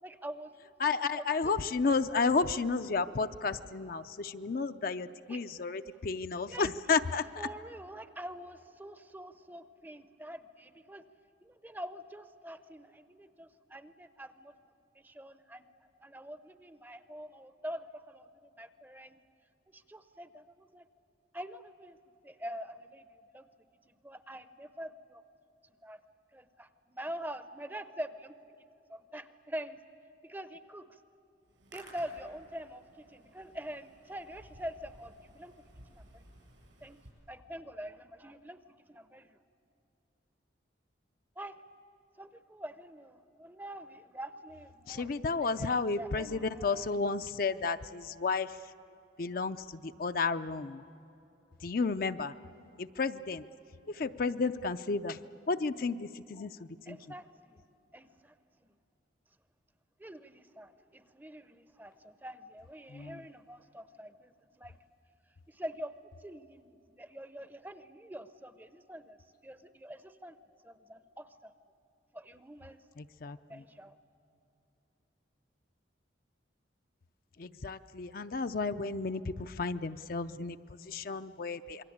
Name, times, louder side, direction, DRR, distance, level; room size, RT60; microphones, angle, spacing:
voice 1, 0.0-0.7 1.0-1.6 5.3-5.7 6.5-6.7 7.4-11.0 11.4-14.5 15.0-15.7 16.0-19.2 19.7-20.8 21.3-22.0 22.2-25.2 25.8-26.0 26.3-28.3 28.9-29.8 30.2-31.0 31.7-36.2 36.8-37.0 37.3-39.4 41.4-41.6 42.2-46.8 56.9-57.6 57.9-58.3 60.0-64.8 65.5-65.9 66.2-69.2 69.4-70.3 70.6-71.5 72.1-72.8 73.5-73.9, equal, 10° right, 12 dB, 0.6 m, -45 dB
voice 2, 0.8-7.2 44.9-48.6 49.2-50.8 51.6-52.3 52.8-53.4 53.9-55.2 55.5-56.5 56.9-57.0 62.9-63.2 73.0-73.6 77.4-81.8, left 4 dB, 50° left, 10 dB, 0.5 m, -32 dB
Hands, 31.4-37.1, right 1 dB, 80° right, 7.5 m, -57 dB
27.0 x 22.5 x 8.6 m, 2.9 s
head